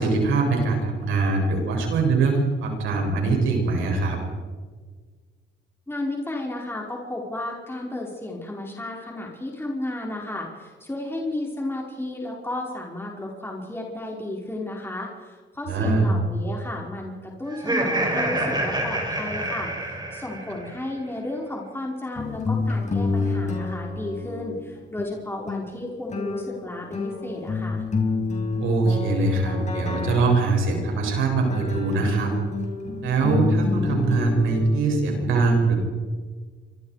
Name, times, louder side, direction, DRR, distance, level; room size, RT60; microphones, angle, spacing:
voice 1, 0.0-4.2 15.7-16.1 28.6-32.4 33.0-35.8, right 3 dB, 85° right, 1 dB, 7.7 m, -22 dB
voice 2, 5.9-27.8, left 1 dB, 10° left, -2 dB, 5.0 m, -33 dB
Laughter, 17.5-20.7, right 1 dB, 20° right, 7.1 m, -27 dB
sound 1, 22.2-24.7 25.0-25.1 25.5-34.8, left 3 dB, 35° left, 6.1 m, -28 dB
28.5 x 25.5 x 5.1 m, 1.5 s
cardioid pair, 90°, 20 cm